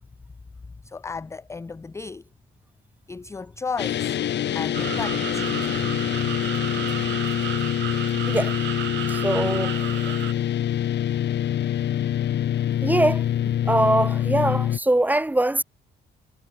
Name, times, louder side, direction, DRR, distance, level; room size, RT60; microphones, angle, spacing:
voice 1, 0.8-2.2 3.1-4.1 4.5-5.5, left 4 dB, 15° left, 0.4 m, -34 dB
sound 1, 3.8-14.8, left 11 dB, 60° left, 1.2 m, -25 dB
sound 2, 4.7-10.3, right 13 dB, 70° right, 0.9 m, -33 dB
voice 2, 9.1-10.1 12.8-13.2 13.7-15.6, right 1 dB, 10° right, 1.0 m, -22 dB
cardioid pair, 90°, 20 cm